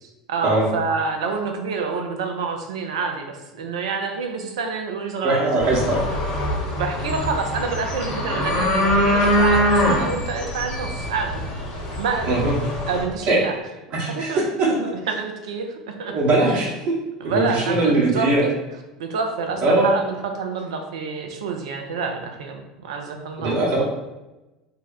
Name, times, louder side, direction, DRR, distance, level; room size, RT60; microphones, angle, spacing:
voice 1, 0.0-5.7 6.7-11.4 11.7-12.4 12.9-13.5 14.1-16.1 16.5-16.7 17.2-18.5 19.0-23.6, right 4 dB, 70° right, 4 dB, 0.5 m, -28 dB
voice 2, 5.2-6.0 12.2-12.5 13.3-13.4 13.9-14.7 16.1-16.7 17.2-18.4 19.6-19.9 23.4-23.8, right 2 dB, 50° right, -3 dB, 1.1 m, -20 dB
sound 1, 5.6-13.0, equal, 55° left, 0.9 m, -23 dB
2.7 x 2.1 x 3.9 m, 1.0 s
figure-of-eight pair, 75°, 3 cm